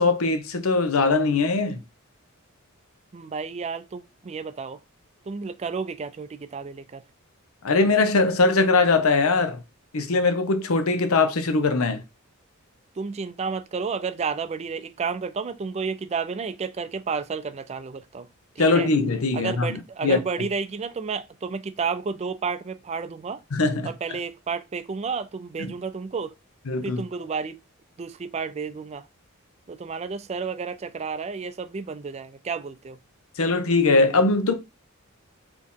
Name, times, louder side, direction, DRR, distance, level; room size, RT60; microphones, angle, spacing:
voice 1, 0.0-1.8 7.6-9.6 9.9-12.0 18.6-20.2 23.5-23.9 26.7-27.0 33.4-34.5, left 3 dB, 80° left, 0.7 m, -21 dB
voice 2, 3.1-4.8 5.3-7.0 13.0-18.3 18.6-18.9 19.3-23.4 23.8-26.3 26.8-27.6 28.0-29.1 29.7-33.0, right 5 dB, 30° right, 0.3 m, -31 dB
4.2 x 3.0 x 3.6 m
head